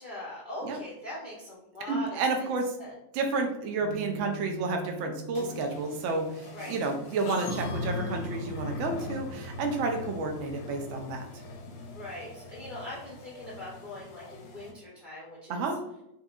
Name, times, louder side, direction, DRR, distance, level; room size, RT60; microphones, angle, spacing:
voice 1, 0.0-2.1 2.4-2.5 2.8-2.9 6.5-6.7 11.9-15.6, left 1 dB, 50° left, -5 dB, 0.5 m, -41 dB
voice 2, 1.9-2.7 3.1-11.3 15.5-15.8, right 3 dB, 75° right, 3 dB, 0.7 m, -31 dB
Piano, 3.8-10.5, right 5 dB, 30° right, 0.9 m, -46 dB
sound 1, 5.3-14.7, left 2 dB, 80° left, 1.3 m, -40 dB
4.3 x 2.5 x 2.3 m, 0.81 s
omnidirectional pair, 2.0 m